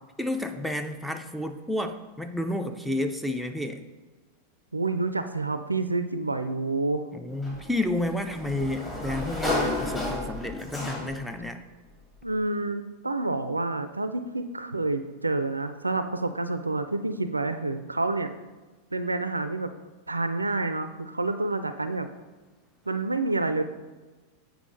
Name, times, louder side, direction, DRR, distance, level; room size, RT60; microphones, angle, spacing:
voice 1, 0.2-3.9 7.1-11.6, left 1 dB, ahead, 6 dB, 0.5 m, -31 dB
voice 2, 4.7-7.1 12.2-18.3 18.9-19.7 20.1-22.2 22.9-23.6, right 2 dB, 80° right, 10 dB, 0.4 m, -28 dB
Sliding door, 7.4-11.4, left 2 dB, 20° left, 2.4 m, -31 dB
8.1 x 4.7 x 3.9 m, 1.2 s
figure-of-eight pair, 90°, 0 cm